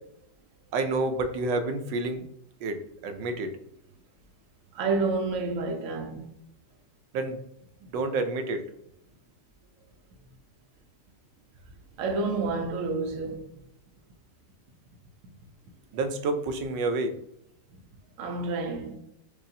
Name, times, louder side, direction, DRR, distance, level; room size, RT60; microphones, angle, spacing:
voice 1, 0.7-2.2 2.6-3.5 7.1-7.4 7.9-8.6 15.9-17.1, right 2 dB, 90° right, 1.3 m, -29 dB
voice 2, 4.7-6.3 12.0-13.5 18.2-19.0, right 3 dB, 60° right, 0.9 m, -29 dB
4.8 x 2.7 x 2.6 m
omnidirectional pair, 1.9 m